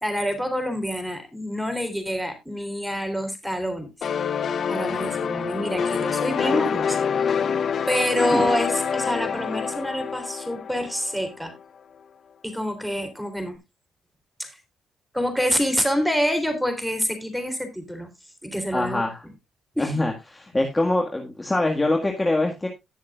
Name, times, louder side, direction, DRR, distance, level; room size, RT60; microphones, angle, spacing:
voice 1, 0.0-3.9 4.7-7.5 7.9-11.6 12.4-13.6 14.4-14.6 15.1-18.1 18.4-19.0 19.8-19.9, equal, ahead, 3.4 m, -27 dB
sound 1, 4.0-11.5, left 7 dB, 55° left, 0.8 m, -26 dB
voice 2, 18.7-19.3 19.8-22.7, left 2 dB, 15° left, 1.8 m, -24 dB
18.5 x 6.4 x 2.4 m
cardioid pair, 90°, 0 cm